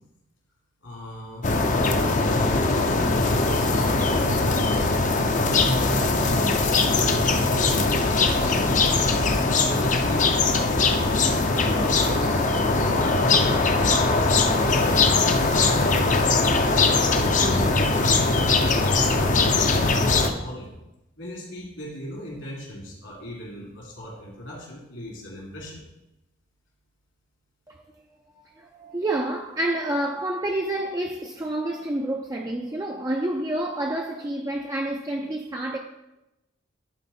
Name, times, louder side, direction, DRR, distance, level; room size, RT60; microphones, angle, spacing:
voice 1, 0.8-1.5 2.1-9.2 9.7-11.0 11.6-16.8 17.4-20.7 21.2-25.8, equal, 80° left, 3.2 m, -38 dB
sound 1, 1.4-20.3, left 3 dB, 40° left, 0.6 m, -21 dB
voice 2, 28.4-35.8, right 1 dB, 20° right, 0.5 m, -28 dB
10.5 x 4.4 x 4.3 m
head